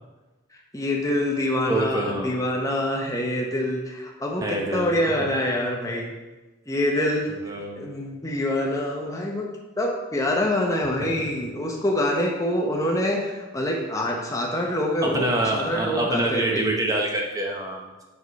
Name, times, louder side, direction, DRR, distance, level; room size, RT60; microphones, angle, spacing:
voice 1, 0.7-6.1 6.7-7.3 7.8-9.5 9.8-16.6, left 1 dB, 15° left, 0 dB, 0.8 m, -25 dB
voice 2, 1.7-2.3 4.4-4.9 5.2-5.3 7.4-7.9 15.0-17.9, right 1 dB, 15° right, 0 dB, 0.8 m, -26 dB
6.1 x 5.2 x 4.0 m, 1.2 s
head